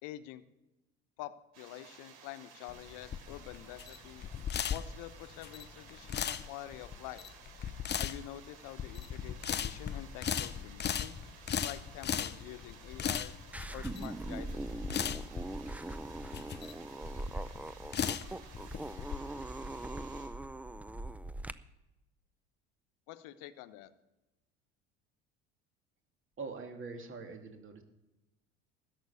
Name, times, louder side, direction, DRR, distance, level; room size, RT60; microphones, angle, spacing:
voice 1, 0.0-0.4 1.2-4.2 4.7-7.2 8.0-11.2 11.6-13.3 13.7-15.2 23.1-23.9, left 14 dB, 70° left, 13 dB, 0.9 m, -47 dB
sound 1, 1.5-20.3, right 6 dB, 75° right, 3.5 m, -56 dB
sound 2, 2.7-19.2, left 8 dB, 30° left, 0.7 m, -37 dB
sound 3, 13.5-21.5, right 1 dB, 5° right, 0.5 m, -41 dB
voice 2, 26.4-27.8, right 4 dB, 35° right, 4 dB, 2.3 m, -43 dB
13.5 x 6.1 x 9.7 m, 0.98 s
hypercardioid pair, 75°, 33 cm